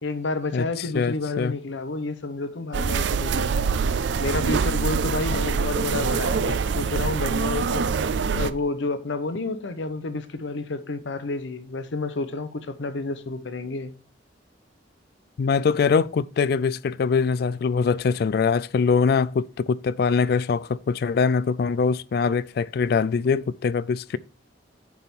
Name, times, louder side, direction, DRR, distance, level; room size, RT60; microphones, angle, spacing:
voice 1, 0.0-3.5 4.2-7.8 8.3-13.9, left 3 dB, 85° left, 0.7 m, -30 dB
voice 2, 0.9-1.5 15.4-24.2, left 5 dB, 55° left, 0.3 m, -23 dB
sound 1, 2.7-8.5, right 5 dB, 75° right, 0.4 m, -24 dB
9.3 x 3.6 x 4.3 m
head